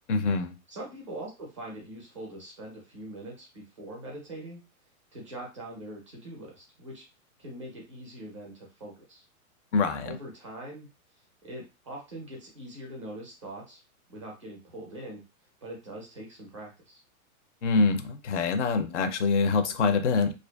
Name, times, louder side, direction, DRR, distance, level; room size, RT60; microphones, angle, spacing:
voice 1, 0.1-0.5 9.7-10.2 17.6-20.3, left 4 dB, 55° left, 8 dB, 0.5 m, -25 dB
voice 2, 0.7-4.6 5.1-7.0 7.4-9.2 10.0-10.9 11.4-13.8 14.1-15.2 15.6-17.0, right 1 dB, 25° right, -2 dB, 0.4 m, -42 dB
2.5 x 2.2 x 2.2 m, 0.28 s
supercardioid pair, 175°, 43 cm